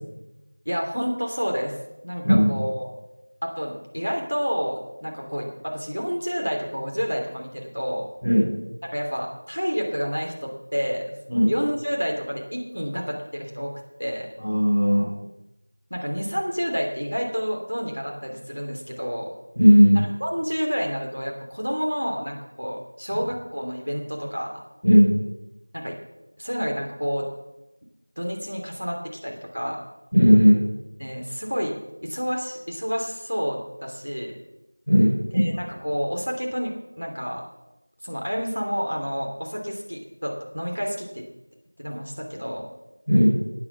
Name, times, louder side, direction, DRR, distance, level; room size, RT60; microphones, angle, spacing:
voice 1, 0.6-1.7 2.0-2.9 3.4-8.1 8.9-11.1 11.5-13.7 14.0-14.3 15.9-19.3 19.9-24.5 25.7-26.0 26.4-27.3 28.2-29.8 31.0-34.4 35.3-37.4 38.0-41.2 41.8-42.6, equal, 65° right, 0 dB, 2.9 m, -29 dB
voice 2, 14.4-15.1 19.5-19.9 24.8-25.1 30.1-30.6 34.9-35.5 43.1-43.3, equal, ahead, -11 dB, 4.8 m, -16 dB
12.5 x 9.0 x 6.0 m, 0.94 s
figure-of-eight pair, 180°, 0 cm